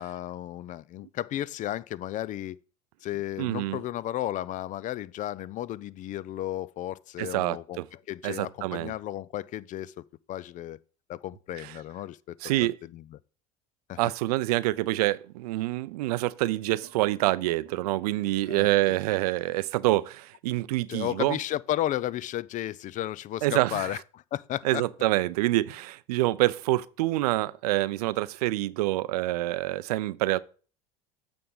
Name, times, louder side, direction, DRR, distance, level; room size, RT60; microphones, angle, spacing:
voice 1, 0.0-2.6 3.0-7.8 8.1-10.0 10.3-10.8 11.1-13.2 13.9-14.0 18.5-19.0 20.9-24.8, left 13 dB, 40° left, 0.4 m, -34 dB
voice 2, 3.4-3.8 7.2-7.9 8.2-8.9 11.6-11.7 12.4-12.8 14.0-21.4 23.4-24.0 24.6-30.4, right 17 dB, 80° right, 0.5 m, -26 dB
8.6 x 3.5 x 5.5 m
hypercardioid pair, 85°, 20 cm